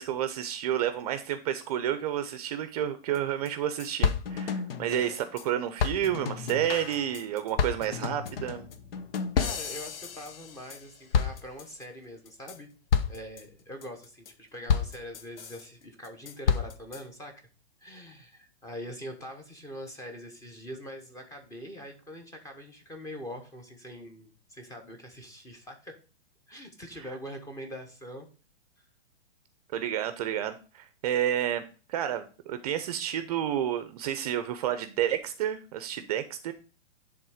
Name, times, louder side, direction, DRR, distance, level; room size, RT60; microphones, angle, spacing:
voice 1, 0.0-8.7 29.7-31.6 31.9-36.5, right 10 dB, 35° right, 10 dB, 0.6 m, -30 dB
sound 1, 3.1-3.2 3.5-3.6 3.8-5.5 5.8-10.8 11.1-11.8 12.3-12.6 12.9-13.4 13.8-14.3 14.7-15.6 16.0-17.0, left 6 dB, 60° left, 1.0 m, -30 dB
voice 2, 9.3-12.7 13.1-17.5 17.8-26.0 26.5-28.3 28.8-28.9, equal, 10° left, 5 dB, 1.0 m, -43 dB
10.5 x 3.6 x 4.9 m, 0.35 s
hypercardioid pair, 155°, 32 cm